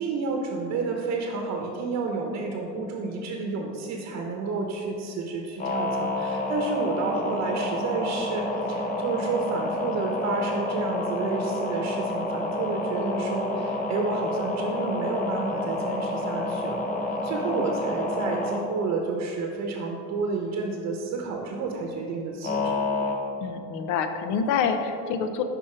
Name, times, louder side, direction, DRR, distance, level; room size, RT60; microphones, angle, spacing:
voice 1, 0.0-16.8 17.1-22.8, right 3 dB, 60° right, 1 dB, 0.8 m, -30 dB
sound 1, 5.6-18.6 22.4-23.1, left 2 dB, 25° left, 0.9 m, -29 dB
voice 2, 23.4-25.4, left 6 dB, 70° left, 8 dB, 0.6 m, -26 dB
6.0 x 5.1 x 4.4 m, 2.8 s
supercardioid pair, 100°, 31 cm